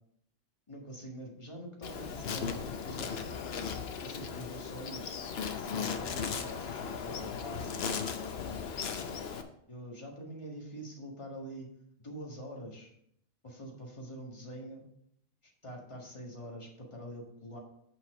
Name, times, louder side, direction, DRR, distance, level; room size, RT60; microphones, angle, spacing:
voice 1, 0.7-3.3 4.0-5.2 5.5-9.1 9.7-11.7 12.0-12.9 13.4-14.8 15.4-17.6, equal, 25° left, -1 dB, 1.7 m, -45 dB
Insect, 1.8-9.4, left 6 dB, 60° left, 0.9 m, -37 dB
6.9 x 5.6 x 4.8 m, 0.72 s
omnidirectional pair, 1.3 m